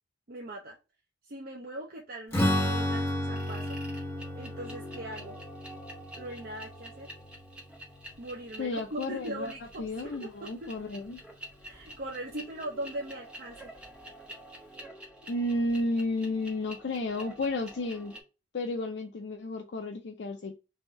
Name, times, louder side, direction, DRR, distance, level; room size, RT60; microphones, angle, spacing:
voice 1, 0.3-0.8 1.3-3.8 4.3-5.4 6.1-7.1 8.2-10.7 11.6-13.7, right 1 dB, 55° right, 0.6 m, -40 dB
Strum, 2.3-7.9, left 1 dB, 15° left, 1.2 m, -32 dB
sound 1, 2.5-2.8 3.3-18.2, equal, 5° right, 1.0 m, -48 dB
voice 2, 8.6-9.5 9.8-11.2 15.3-18.1 18.5-20.5, left 2 dB, 70° left, 0.5 m, -32 dB
3.4 x 2.6 x 4.3 m
head